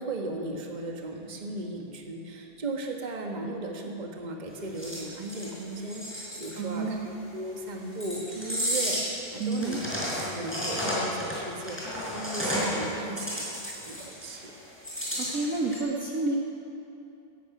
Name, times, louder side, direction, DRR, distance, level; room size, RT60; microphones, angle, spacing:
voice 1, 0.0-9.8 10.1-14.5, right 2 dB, 25° right, 2 dB, 1.5 m, -36 dB
sound 1, 4.8-6.5 7.9-9.1 9.4-12.9 13.2-14.4 14.8-15.8, equal, 5° left, 4.7 m, -32 dB
voice 2, 6.6-7.1 9.4-9.8 15.2-16.4, right 3 dB, 50° right, -1 dB, 1.5 m, -29 dB
14.5 x 11.5 x 8.3 m, 2.7 s
omnidirectional pair, 2.1 m